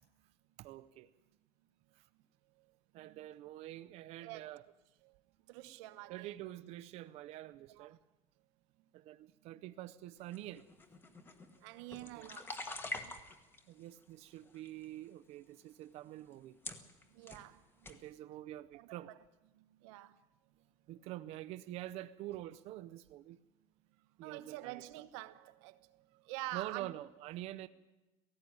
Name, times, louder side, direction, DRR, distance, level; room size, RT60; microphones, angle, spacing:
voice 1, 0.6-1.1 2.0-2.1 2.9-4.6 6.1-8.0 8.9-10.7 12.1-12.3 13.0-13.2 13.7-16.6 17.9-19.1 20.9-23.4 24.2-24.8 26.5-27.7, right 14 dB, 45° right, 0.6 m, -46 dB
voice 2, 3.0-3.3 4.2-4.7 5.0-5.2 5.5-6.3 7.7-8.0 9.5-9.6 11.6-12.8 16.4-16.5 17.1-17.9 18.7-19.2 19.5-20.2 24.2-26.9, right 17 dB, 85° right, 1.1 m, -48 dB
sound 1, 10.3-13.6 14.3-14.8 15.6-15.7 16.3-16.4 16.6-17.5 17.8-18.0, left 2 dB, 15° left, 1.4 m, -45 dB
17.5 x 15.5 x 9.6 m
cardioid pair, 170°, 15 cm